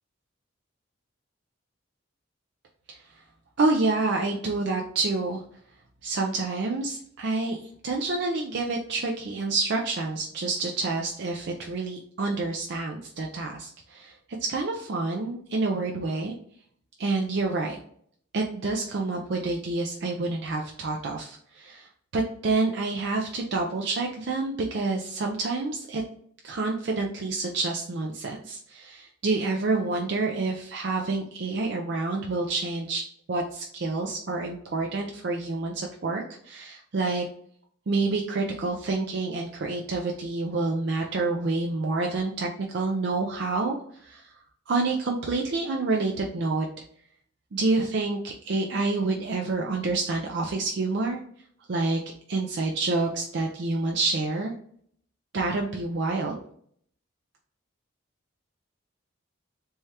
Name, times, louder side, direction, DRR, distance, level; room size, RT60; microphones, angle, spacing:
voice 1, 3.6-5.4 6.0-7.6 7.8-14.1 14.5-16.3 17.0-17.8 18.3-21.9 22.1-26.0 26.4-33.0 33.3-37.2 37.9-44.3 44.7-46.7 47.5-51.2 51.7-52.0 52.3-54.5 55.3-56.4, right 3 dB, 55° right, 0 dB, 0.4 m, -28 dB
3.4 x 3.2 x 2.8 m, 0.62 s
head